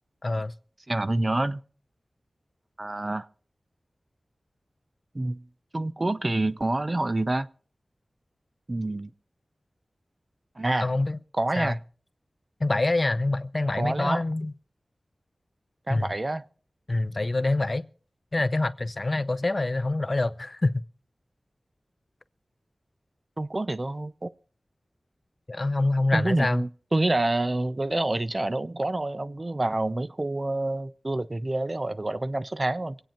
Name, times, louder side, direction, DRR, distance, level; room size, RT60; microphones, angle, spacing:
voice 1, 0.2-0.5 10.8-11.2 11.6-11.7 12.6-14.5 15.9-16.1 16.9-17.9 18.3-20.8 25.5-26.6, left 2 dB, 45° left, 0.6 m, -26 dB
voice 2, 0.9-1.6 2.8-3.3 5.1-5.4 5.7-7.5 8.7-9.1 10.6-10.9 11.4-11.8 13.8-14.2 15.9-16.4 23.4-24.3 26.1-33.0, right 2 dB, 35° right, 0.6 m, -27 dB
24.5 x 9.0 x 4.5 m
wide cardioid pair, 60°, 0 cm